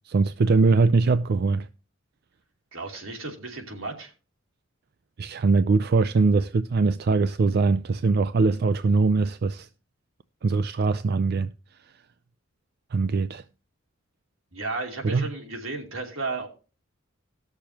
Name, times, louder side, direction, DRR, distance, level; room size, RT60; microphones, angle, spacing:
voice 1, 0.1-1.7 5.2-9.7 10.4-11.5 12.9-13.4 15.0-15.3, right 4 dB, 50° right, 0.4 m, -22 dB
voice 2, 2.7-4.1 14.5-16.5, right 3 dB, 80° right, 3.0 m, -33 dB
19.0 x 6.7 x 2.9 m
head